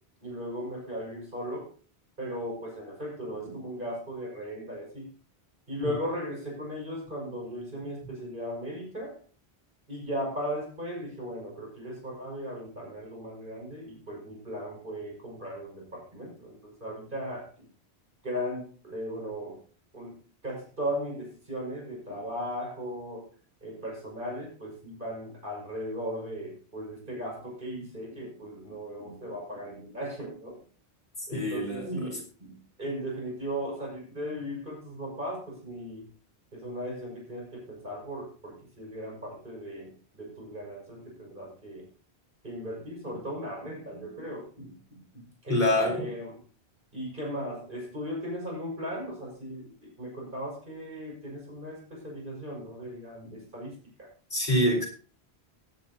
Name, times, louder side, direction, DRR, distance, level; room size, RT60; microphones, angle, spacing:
voice 1, 0.2-1.7 2.2-5.1 5.7-9.1 9.9-17.7 18.2-19.6 19.9-20.2 20.4-23.3 23.6-30.6 31.3-36.1 36.5-41.9 42.4-46.4 46.9-54.1, equal, 50° right, -2 dB, 5.9 m, -37 dB
voice 2, 31.3-32.2 45.5-46.1 54.3-54.9, left 1 dB, 45° left, -1 dB, 4.7 m, -26 dB
18.0 x 10.0 x 2.9 m, 0.39 s
omnidirectional pair, 1.1 m